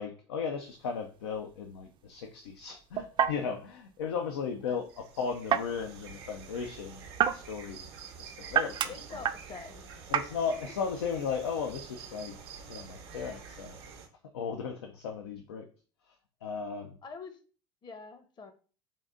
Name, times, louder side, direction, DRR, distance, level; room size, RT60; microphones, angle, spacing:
voice 1, 0.0-7.9 8.2-9.2 10.1-12.4 12.7-13.8 14.3-15.7 16.4-17.0, left 6 dB, 85° left, 4 dB, 0.5 m, -36 dB
sound 1, 0.6-13.6, right 8 dB, 40° right, 0.4 m, -35 dB
sound 2, 4.7-14.1, right 6 dB, 80° right, 0.8 m, -48 dB
voice 2, 8.9-9.9 17.0-17.4 17.8-18.5, left 5 dB, 35° left, 9 dB, 0.7 m, -45 dB
3.7 x 2.6 x 3.7 m, 0.38 s
hypercardioid pair, 75°, 13 cm